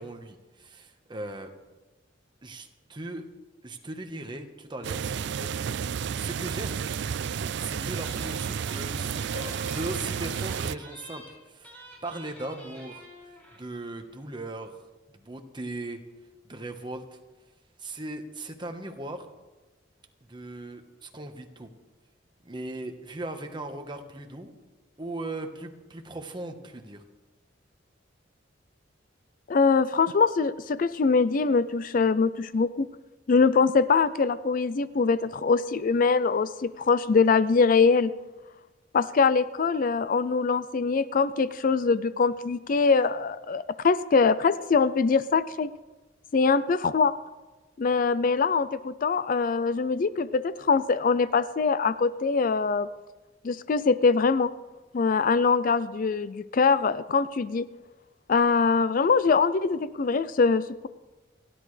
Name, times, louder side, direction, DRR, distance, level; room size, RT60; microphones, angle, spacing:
voice 1, 0.0-1.5 2.4-3.3 3.6-5.5 5.9-6.8 7.6-13.1 13.5-14.8 15.1-16.0 16.4-17.2 17.8-19.3 20.2-21.7 22.4-24.5 25.0-27.0, right 2 dB, 25° right, 5 dB, 1.2 m, -38 dB
sound 1, 4.8-10.7, right 7 dB, 65° right, 0.4 m, -31 dB
sound 2, 7.3-7.5 7.8-13.7 14.0-14.1 14.2-14.4, equal, 10° left, 5.8 m, -48 dB
voice 2, 29.5-32.9 33.3-38.1 38.9-45.7 46.3-47.1 47.8-52.9 53.4-54.5 54.9-57.7 58.3-60.9, left 4 dB, 45° left, 15 dB, 0.4 m, -23 dB
30.0 x 11.0 x 3.3 m, 1.2 s
head